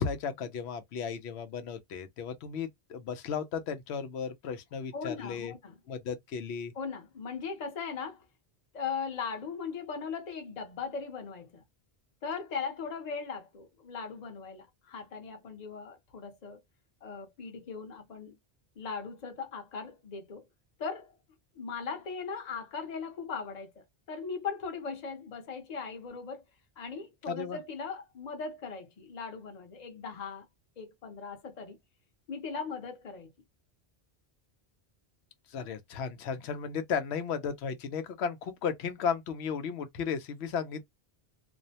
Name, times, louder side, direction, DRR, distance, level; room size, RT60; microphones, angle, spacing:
voice 1, 0.0-5.5 5.9-6.7 27.3-27.6 35.5-40.8, left 6 dB, 90° left, 0.9 m, -34 dB
voice 2, 4.9-5.7 6.7-8.2 8.7-11.6 12.2-16.6 17.0-18.4 18.8-20.5 20.8-21.2 21.6-26.4 26.8-30.4 30.8-31.8 32.3-33.3, left 5 dB, 45° left, 0.8 m, -39 dB
2.5 x 2.1 x 2.7 m
omnidirectional pair, 1.1 m